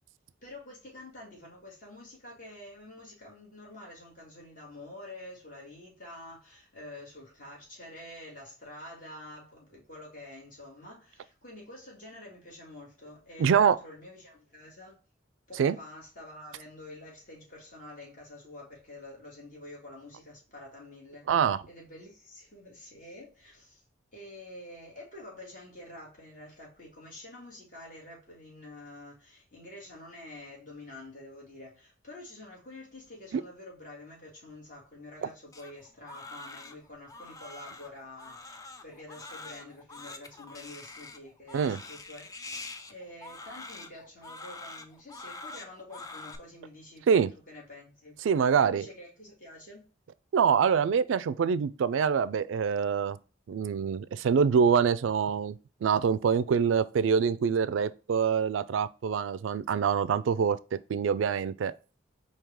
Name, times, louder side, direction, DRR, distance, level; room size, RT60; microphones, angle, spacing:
voice 1, 0.4-15.0 15.5-21.3 21.7-23.8 24.1-42.3 42.6-48.2 48.5-49.9, left 1 dB, 45° left, 2.2 m, -48 dB
voice 2, 13.4-13.8 15.6-15.7 21.3-21.6 33.3-33.4 41.5-41.8 47.1-47.3 48.2-48.8 50.3-53.2 53.5-55.6 55.8-60.6 60.9-61.7, right 6 dB, 85° right, 0.3 m, -25 dB
Crying sobbing, 35.5-46.4, left 3 dB, 15° left, 0.3 m, -45 dB
4.8 x 2.8 x 3.5 m
head